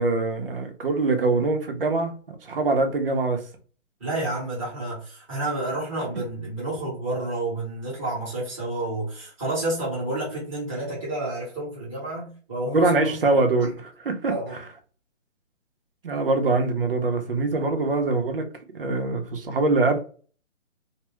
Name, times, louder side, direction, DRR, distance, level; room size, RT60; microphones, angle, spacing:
voice 1, 0.0-3.4 12.7-14.3 16.0-18.5 18.7-20.0, right 3 dB, 50° right, 0.7 m, -23 dB
voice 2, 4.0-12.9 14.2-14.6, right 2 dB, 5° right, 0.9 m, -30 dB
2.6 x 2.3 x 3.0 m
hypercardioid pair, 170°, 37 cm